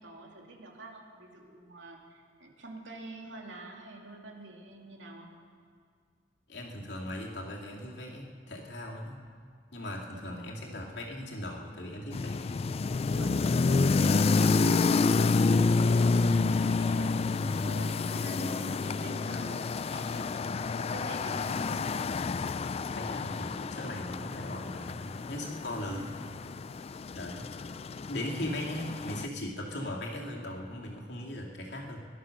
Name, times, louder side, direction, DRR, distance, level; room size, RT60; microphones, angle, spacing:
voice 1, 0.0-5.3 10.1-10.4 13.1-13.4 13.9-20.3 20.9-21.7, right 2 dB, 90° right, 0 dB, 2.5 m, -46 dB
voice 2, 6.5-9.2 9.7-12.5 20.4-20.6 22.9-26.2 27.1-27.6 28.1-32.0, left 1 dB, 65° left, -1 dB, 2.4 m, -38 dB
sound 1, 12.1-29.3, left 4 dB, 35° left, 0.3 m, -29 dB
18.0 x 12.0 x 6.5 m, 2.1 s
head